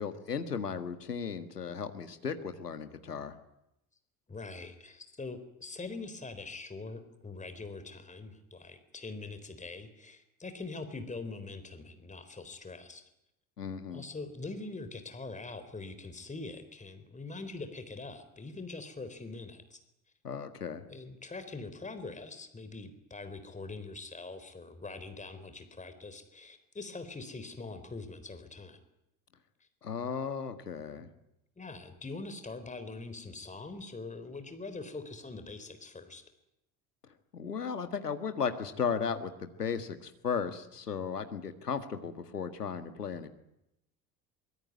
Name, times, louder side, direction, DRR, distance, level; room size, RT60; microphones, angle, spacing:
voice 1, 0.0-3.3 13.6-14.0 20.2-20.8 29.8-31.1 37.3-43.3, left 6 dB, 85° left, 9 dB, 1.8 m, -35 dB
voice 2, 4.3-13.0 13.9-19.8 20.9-28.8 29.6-29.7 30.9-31.1 31.6-36.2, left 3 dB, 15° left, 9 dB, 3.9 m, -43 dB
24.0 x 21.5 x 9.6 m, 0.84 s
figure-of-eight pair, 65°, 46 cm